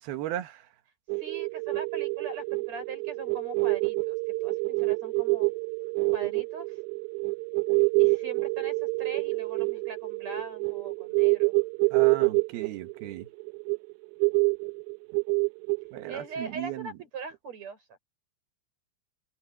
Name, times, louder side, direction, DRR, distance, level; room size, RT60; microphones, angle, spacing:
voice 1, 0.0-0.7 11.9-13.3 15.9-17.0, right 12 dB, 70° right, 2.9 m, -36 dB
sound 1, 1.1-16.5, right 36 dB, 85° right, 2.9 m, -27 dB
voice 2, 1.2-4.2 4.4-5.5 6.1-6.8 8.0-11.5 16.1-18.0, right 3 dB, 35° right, 7.3 m, -41 dB
open air
omnidirectional pair, 5.2 m